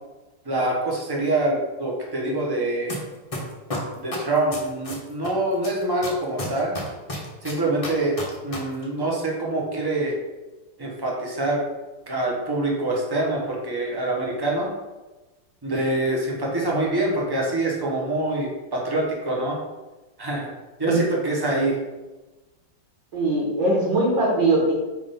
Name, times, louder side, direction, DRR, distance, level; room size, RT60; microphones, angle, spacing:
voice 1, 0.4-3.0 4.0-6.7 7.4-10.1 10.8-11.6 12.1-14.7 15.6-19.6 20.2-20.5 20.8-21.7, right 2 dB, 25° right, -2 dB, 0.5 m, -25 dB
sound 1, 2.9-3.0 3.3-5.3 5.6-8.6 8.8-8.9, left 2 dB, 30° left, 0.6 m, -31 dB
voice 2, 23.1-24.8, right 2 dB, 60° right, -3 dB, 2.0 m, -21 dB
4.7 x 3.7 x 5.5 m, 1.1 s
omnidirectional pair, 2.4 m